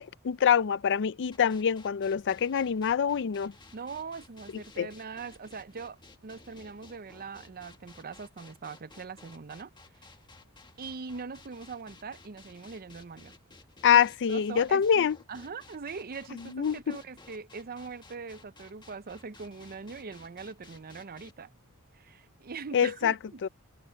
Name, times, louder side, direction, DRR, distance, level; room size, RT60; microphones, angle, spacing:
voice 1, 0.0-3.5 4.8-4.9 13.8-15.2 16.5-17.0 22.7-23.1 23.4-23.5, left 8 dB, 55° left, 0.4 m, -25 dB
sound 1, 1.3-21.3, left 3 dB, 20° left, 1.7 m, -55 dB
voice 2, 3.7-9.7 10.0-10.1 10.8-13.3 13.9-14.0 14.3-21.5 21.9-23.5, right 5 dB, 40° right, 0.6 m, -42 dB
head